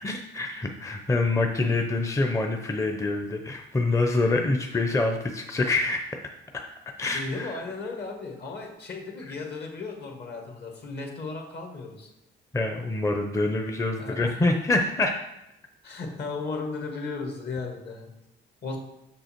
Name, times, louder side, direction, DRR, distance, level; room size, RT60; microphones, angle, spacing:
voice 1, 0.0-6.1 6.5-6.7 7.0-7.5 12.5-15.2, left 2 dB, 15° left, 4 dB, 0.6 m, -26 dB
voice 2, 7.1-12.1 14.0-14.4 15.8-18.1 18.6-18.8, left 3 dB, 55° left, 2 dB, 1.7 m, -35 dB
6.2 x 5.4 x 4.4 m, 0.86 s
cardioid pair, 95°, 21 cm